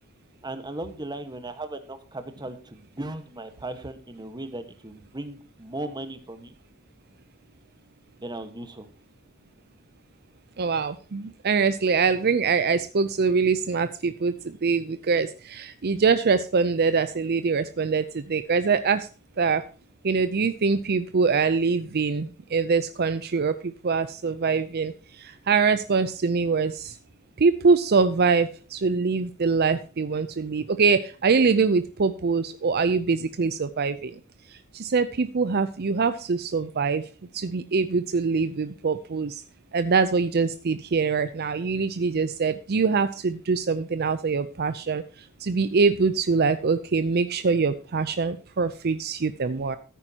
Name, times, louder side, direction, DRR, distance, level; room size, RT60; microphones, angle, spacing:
voice 1, 0.4-6.5 8.2-8.9, right 2 dB, 20° right, 9 dB, 1.4 m, -37 dB
voice 2, 10.6-19.1 19.4-19.6 20.0-27.0 27.4-34.2 34.5-37.0 37.3-39.4 39.7-45.0 45.4-49.8, right 5 dB, 50° right, 12 dB, 0.5 m, -24 dB
14.0 x 9.1 x 2.9 m, 0.37 s
head